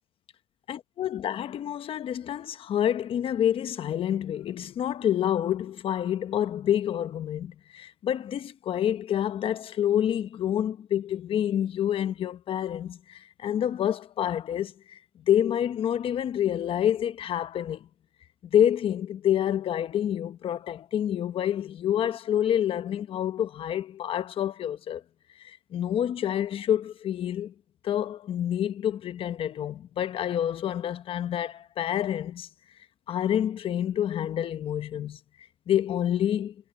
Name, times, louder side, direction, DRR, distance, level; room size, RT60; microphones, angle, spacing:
voice 1, 0.7-15.0 15.3-17.9 18.5-25.0 25.4-27.5 27.8-32.5 33.1-35.2 35.7-36.5, left 10 dB, 30° left, 0.8 m, -28 dB
supercardioid pair, 145°, 19 cm